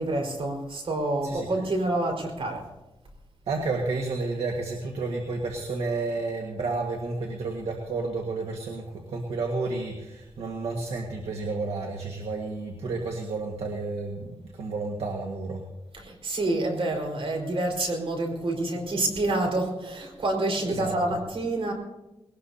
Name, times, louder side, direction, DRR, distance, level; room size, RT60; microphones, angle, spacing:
voice 1, 0.0-2.6 15.9-21.7, right 2 dB, 65° right, 1 dB, 4.8 m, -28 dB
voice 2, 3.5-15.6 20.6-21.0, right 3 dB, 85° right, 2 dB, 1.7 m, -31 dB
21.0 x 19.0 x 2.8 m, 0.97 s
cardioid pair, 75°, 10 cm